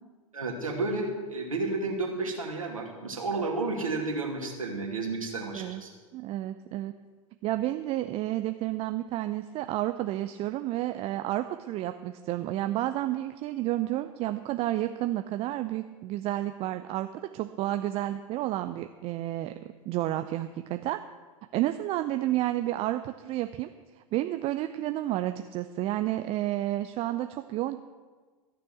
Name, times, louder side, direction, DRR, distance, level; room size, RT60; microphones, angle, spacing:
voice 1, 0.3-5.9, right 3 dB, 80° right, 1 dB, 2.5 m, -31 dB
voice 2, 6.1-6.9 7.4-17.1 17.3-19.5 19.9-21.0 21.5-23.7 24.0-27.8, right 14 dB, 35° right, 9 dB, 0.6 m, -31 dB
14.5 x 6.9 x 8.2 m, 1.4 s
figure-of-eight pair, 90°, 17 cm